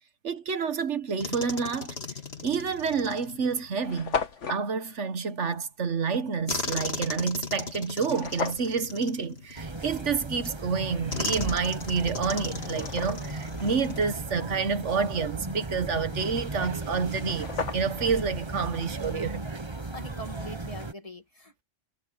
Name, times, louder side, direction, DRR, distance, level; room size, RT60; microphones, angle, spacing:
voice 1, 0.2-2.0 2.4-4.2 4.5-19.4, right 5 dB, 75° right, 1.6 m, -29 dB
sound 1, 1.2-3.9 6.5-10.0 11.1-14.5 14.8-15.0 17.3-17.6, left 3 dB, 60° left, 2.6 m, -37 dB
sound 2, 2.3-2.5 3.2-3.3 3.5-3.6 3.8-4.6 8.1-8.7 11.7-11.8 12.3-13.5 16.8-16.9 17.1-18.1, left 6 dB, 80° left, 1.7 m, -34 dB
sound 3, 9.6-20.9, right 2 dB, 25° right, 1.3 m, -36 dB
voice 2, 19.8-21.6, equal, 30° left, 2.5 m, -42 dB
omnidirectional pair, 1.2 m